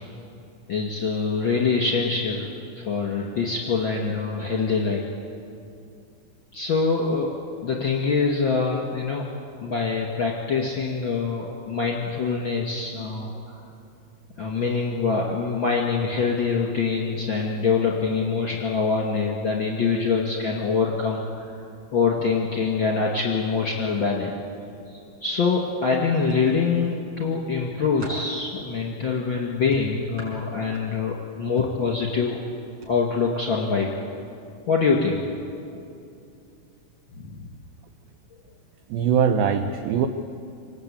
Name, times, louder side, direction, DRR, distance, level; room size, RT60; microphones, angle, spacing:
voice 1, 0.7-2.5 2.7-5.0 6.5-7.3 7.6-9.2 9.6-13.6 14.4-21.5 21.9-24.3 24.9-32.4 32.8-33.9 34.7-35.3 37.2-37.5, left 5 dB, 35° left, -2 dB, 2.4 m, -24 dB
sound 1, 26.2-27.0 27.5-28.3 29.7-31.1 31.6-31.9 32.7-32.9 33.3-33.5, left 1 dB, 25° right, 5.7 m, -39 dB
voice 2, 38.9-40.1, right 7 dB, 75° right, 7 dB, 2.4 m, -21 dB
26.5 x 20.0 x 8.7 m, 2.6 s
omnidirectional pair, 4.9 m